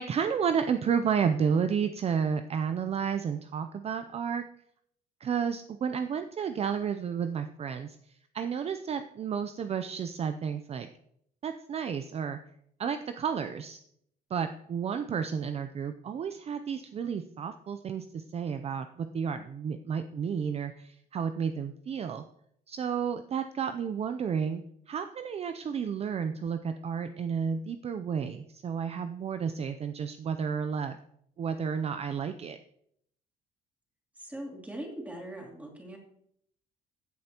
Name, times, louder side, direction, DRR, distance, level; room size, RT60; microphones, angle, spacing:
voice 1, 0.0-4.4 5.2-8.0 8.3-10.9 11.4-12.4 12.8-13.8 14.3-22.2 22.7-31.0 31.4-32.6, right 7 dB, 35° right, 9 dB, 0.5 m, -31 dB
voice 2, 34.2-36.0, right 1 dB, 10° right, -1 dB, 3.0 m, -41 dB
15.5 x 7.6 x 2.9 m, 0.71 s
cardioid pair, 110°, 17 cm